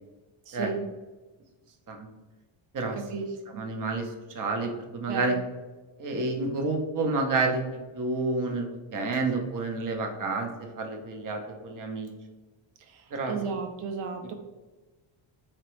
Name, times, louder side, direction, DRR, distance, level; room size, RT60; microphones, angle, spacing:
voice 1, 0.5-0.9 2.9-3.6 5.1-5.4 12.9-14.3, right 5 dB, 80° right, 5 dB, 0.6 m, -34 dB
voice 2, 3.5-4.1 4.3-5.4 6.0-7.6 7.9-12.1 13.1-13.4, right 3 dB, 40° right, 4 dB, 0.7 m, -29 dB
4.4 x 2.9 x 3.1 m, 1.2 s
cardioid pair, 115°, 50 cm